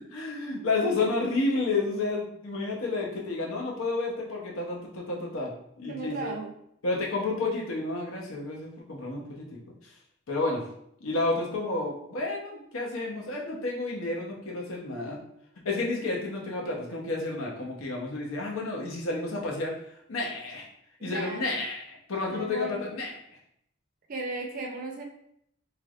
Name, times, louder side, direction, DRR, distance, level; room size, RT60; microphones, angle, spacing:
voice 1, 0.1-5.5 5.8-6.3 6.8-9.6 10.3-10.6 11.0-15.2 15.6-19.7 20.1-20.7 21.0-23.1, left 3 dB, 85° left, -1 dB, 0.8 m, -30 dB
voice 2, 5.9-6.5 21.0-21.5 22.2-22.8 24.1-25.0, right 3 dB, 40° right, 1 dB, 0.5 m, -36 dB
3.3 x 3.0 x 2.4 m, 0.73 s
head